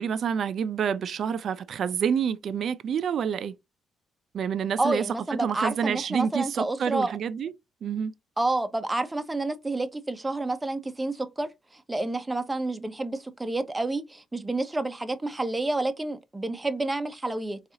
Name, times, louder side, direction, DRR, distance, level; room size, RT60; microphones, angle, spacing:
voice 1, 0.0-3.5 4.3-5.0 5.4-7.5 7.8-8.1, right 7 dB, 60° right, 0.4 m, -28 dB
voice 2, 4.8-7.1 8.4-17.6, right 2 dB, 15° right, 0.6 m, -29 dB
3.9 x 2.4 x 2.7 m
cardioid pair, 90°, 0 cm